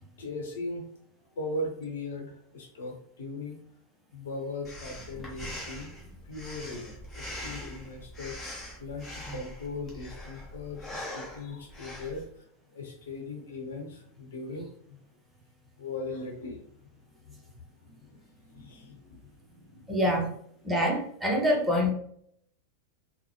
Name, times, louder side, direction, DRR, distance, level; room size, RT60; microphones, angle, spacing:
voice 1, 0.2-0.9 1.2-3.6 4.1-5.9 6.2-8.4 8.8-12.5 12.7-15.0 15.8-20.0 20.6-20.7, left 2 dB, 60° left, 1 dB, 0.9 m, -39 dB
Breathing, 4.6-12.3, left 1 dB, 15° left, 1.1 m, -42 dB
voice 2, 19.9-20.3 20.6-21.9, equal, 10° right, -1 dB, 0.8 m, -25 dB
3.8 x 2.1 x 3.0 m, 0.67 s
figure-of-eight pair, 90°, 0 cm